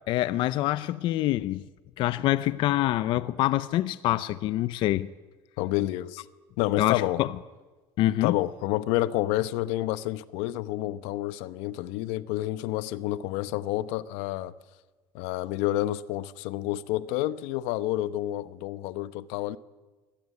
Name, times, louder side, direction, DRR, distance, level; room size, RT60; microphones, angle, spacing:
voice 1, 0.1-1.6 2.0-5.1 6.8-7.3 8.0-8.4, left 15 dB, 55° left, 0.7 m, -25 dB
voice 2, 5.6-6.2 6.6-7.2 8.2-14.5 15.1-19.6, left 15 dB, 85° left, 0.9 m, -29 dB
23.5 x 17.5 x 9.5 m
cardioid pair, 160°, 10 cm